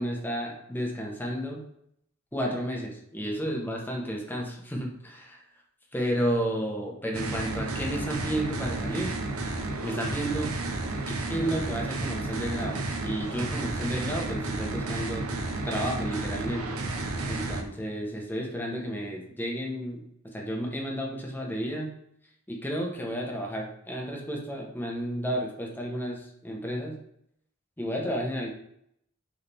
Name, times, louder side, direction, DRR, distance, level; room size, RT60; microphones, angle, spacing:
voice 1, 0.0-1.6 2.3-5.4 5.9-9.1 9.8-10.5 11.1-15.2 15.6-16.7 17.3-20.0 20.3-21.9 22.5-27.0 27.8-28.5, equal, 10° left, -1 dB, 1.2 m, -32 dB
sound 1, 7.1-17.6, right 2 dB, 75° right, 0.9 m, -32 dB
6.9 x 3.9 x 3.5 m, 0.72 s
head